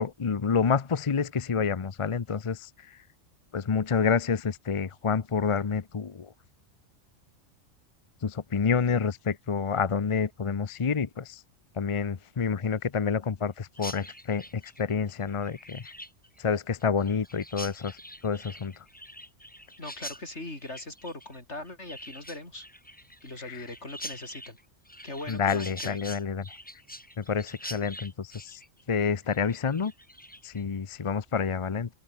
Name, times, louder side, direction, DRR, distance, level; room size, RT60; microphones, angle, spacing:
voice 1, 0.0-3.0 3.5-6.3 8.2-11.4 11.8-15.9 16.4-18.0 18.2-18.7 23.4-23.6 25.3-26.6 27.2-28.6 28.9-29.9 30.4-31.9, left 6 dB, 35° left, 0.6 m, -28 dB
Chirp tweet, 13.7-30.6, equal, 5° left, 3.2 m, -45 dB
voice 2, 19.8-22.6 23.2-24.6 25.0-26.0, left 2 dB, 65° left, 6.1 m, -40 dB
open air
omnidirectional pair, 1.3 m